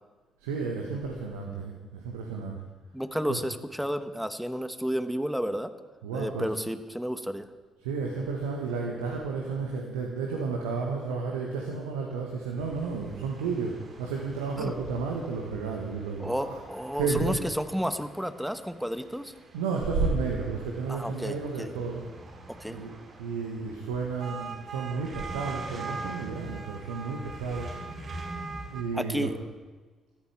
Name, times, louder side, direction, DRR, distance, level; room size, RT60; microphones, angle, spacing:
voice 1, 0.4-2.6 3.3-3.4 6.0-6.5 7.8-16.6 16.9-17.4 19.5-22.0 22.7-27.7 28.7-29.3, right 4 dB, 75° right, 0 dB, 1.4 m, -32 dB
voice 2, 2.9-5.7 6.1-7.5 14.6-14.7 16.2-19.3 20.9-21.7 22.6-22.8 28.9-29.4, equal, ahead, 10 dB, 1.3 m, -31 dB
sound 1, 12.6-28.8, right 3 dB, 40° right, 3.5 m, -43 dB
21.0 x 14.0 x 3.5 m, 1.3 s
figure-of-eight pair, 40°, 0 cm